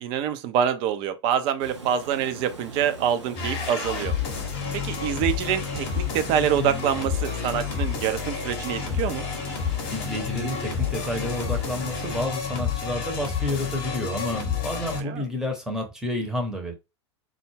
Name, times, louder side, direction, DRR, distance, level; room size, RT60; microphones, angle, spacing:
voice 1, 0.0-4.1 4.7-9.3 15.0-15.2, right 9 dB, 35° right, 0.4 m, -26 dB
Water, 1.6-12.3, right 3 dB, 85° right, 0.7 m, -41 dB
sound 1, 3.4-15.0, left 7 dB, 40° left, 0.8 m, -30 dB
voice 2, 9.9-16.7, left 1 dB, 5° right, 0.7 m, -30 dB
2.3 x 2.0 x 3.2 m
figure-of-eight pair, 85°, 15 cm